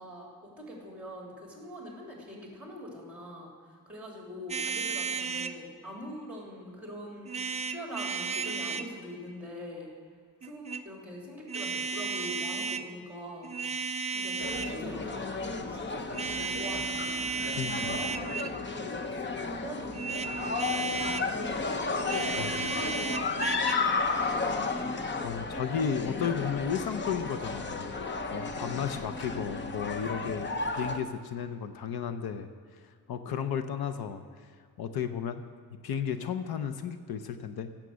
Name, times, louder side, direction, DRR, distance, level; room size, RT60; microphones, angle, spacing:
voice 1, 0.0-3.5 3.9-7.3 7.7-9.9 10.4-13.5 14.1-17.3 17.7-25.3, equal, 5° right, -2 dB, 3.0 m, -43 dB
sound 1, 4.5-5.6 7.3-8.9 10.4-10.8 11.5-12.8 13.4-14.8 16.1-18.6 19.9-21.3 22.0-23.7, right 4 dB, 20° right, 0.4 m, -34 dB
sound 2, 14.4-31.0, left 4 dB, 30° left, 0.7 m, -33 dB
voice 2, 17.5-18.0 22.4-22.7 25.2-27.8 28.3-32.5 33.1-34.2 34.8-35.4 35.8-37.7, left 7 dB, 85° left, 9 dB, 0.8 m, -33 dB
16.5 x 7.6 x 6.3 m, 2.1 s
wide cardioid pair, 170°, 36 cm